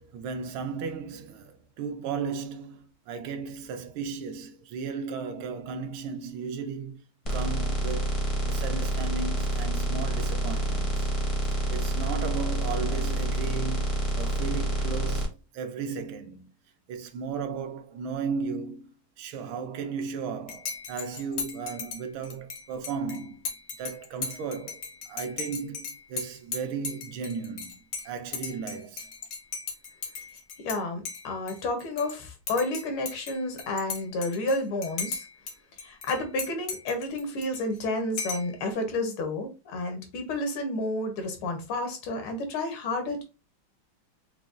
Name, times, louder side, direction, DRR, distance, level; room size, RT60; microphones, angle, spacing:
voice 1, 0.0-7.0 7.3-8.2 8.5-11.1 11.5-13.9 14.1-16.5 16.9-18.9 19.2-23.4 23.8-27.8 28.0-29.1, right 5 dB, 80° right, 1.4 m, -35 dB
sound 1, 7.2-15.2, right 1 dB, 45° left, 0.4 m, -28 dB
Dishes pots and pans / Cutlery silverware / Chink clink, 20.5-30.8 31.1-32.1 32.5-35.5 35.8-37.8 38.2-38.6, left 5 dB, 65° left, 0.9 m, -37 dB
voice 2, 30.6-35.3 35.8-43.2, left 2 dB, 85° left, 1.8 m, -30 dB
5.1 x 2.2 x 2.4 m
omnidirectional pair, 2.3 m